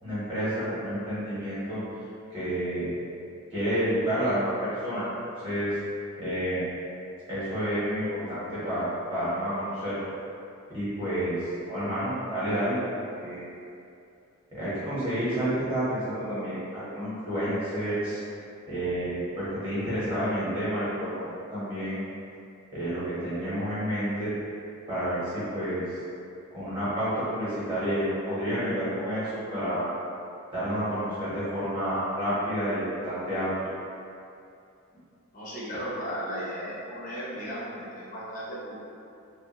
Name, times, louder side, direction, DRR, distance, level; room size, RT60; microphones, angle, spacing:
voice 1, 0.0-1.8 2.3-2.9 3.5-5.1 5.4-5.8 6.2-6.6 7.3-10.0 10.7-12.8 13.2-13.4 14.5-18.2 18.7-22.2 22.7-24.3 24.9-25.8 26.5-29.9 30.5-33.5, equal, 25° right, -12 dB, 1.1 m, -29 dB
voice 2, 35.3-38.8, equal, 35° left, -9 dB, 0.7 m, -35 dB
3.1 x 2.3 x 2.9 m, 2.6 s
head